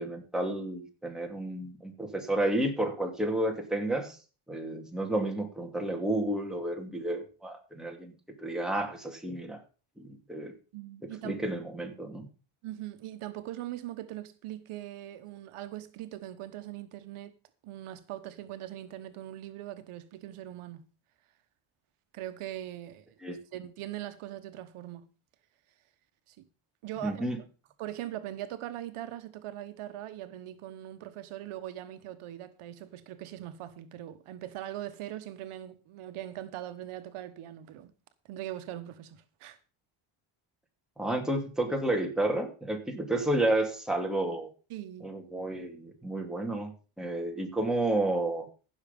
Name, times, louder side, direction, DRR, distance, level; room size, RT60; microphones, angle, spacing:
voice 1, 0.0-4.2 4.5-8.1 8.4-9.6 10.0-10.5 11.2-12.3 23.2-23.4 27.0-27.4 41.0-44.5 45.0-46.7 47.0-48.5, right 1 dB, ahead, 2.5 m, -31 dB
voice 2, 10.7-11.5 12.6-17.3 17.6-20.8 22.1-23.0 23.5-25.1 26.3-26.5 26.8-27.3 27.8-37.9 38.3-39.6 44.7-45.1, right 13 dB, 80° right, 1.2 m, -41 dB
15.0 x 6.5 x 5.3 m
cardioid pair, 130°, 50 cm